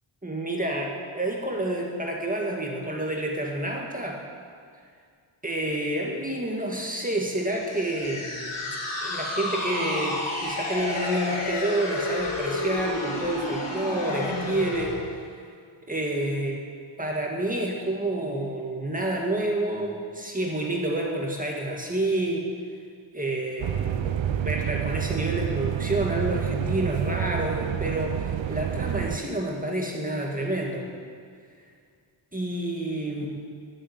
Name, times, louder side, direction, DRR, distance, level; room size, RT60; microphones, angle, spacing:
voice 1, 0.2-4.2 5.4-8.8 9.0-15.4 15.8-16.6 17.0-22.5 23.1-30.9 32.3-33.4, right 1 dB, 15° right, -1 dB, 1.9 m, -29 dB
sound 1, 7.5-15.0, left 2 dB, 75° left, 5.0 m, -31 dB
sound 2, 23.6-29.2, right 9 dB, 65° right, 0.7 m, -28 dB
15.5 x 7.6 x 10.0 m, 2.1 s
wide cardioid pair, 160°, 49 cm